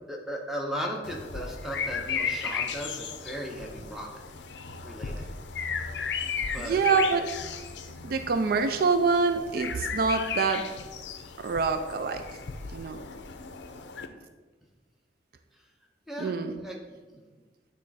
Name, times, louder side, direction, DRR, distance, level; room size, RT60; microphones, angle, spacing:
voice 1, 0.1-4.1 4.8-5.2 6.1-6.3 6.5-6.8 16.1-16.8 17.1-17.2, equal, ahead, -1 dB, 0.8 m, -36 dB
sound 1, 1.0-14.1, left 6 dB, 80° left, 0.5 m, -35 dB
voice 2, 6.6-7.3 8.0-10.6 11.4-12.2 12.7-13.0 16.2-16.5, right 4 dB, 55° right, 7 dB, 0.4 m, -25 dB
8.7 x 3.1 x 4.1 m, 1.3 s
head